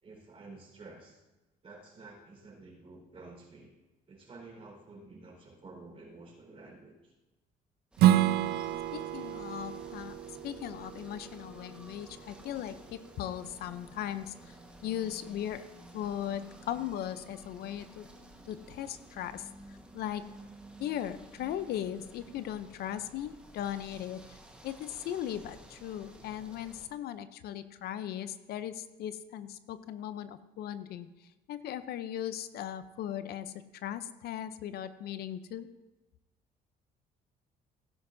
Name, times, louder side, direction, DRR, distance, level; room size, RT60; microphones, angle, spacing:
voice 1, 0.0-1.2 1.6-3.7 4.1-7.1 12.4-12.9, right 3 dB, 35° right, -1 dB, 4.4 m, -51 dB
sound 1, 7.9-26.9, right 1 dB, 5° right, 1.3 m, -53 dB
Strum, 8.0-13.2, right 12 dB, 70° right, 0.5 m, -30 dB
voice 2, 8.9-10.2 10.4-14.6 14.8-15.7 15.9-18.1 18.4-20.2 20.8-24.4 24.6-35.7, left 10 dB, 70° left, 13 dB, 0.6 m, -38 dB
16.5 x 10.5 x 2.7 m, 1.1 s
cardioid pair, 110°, 17 cm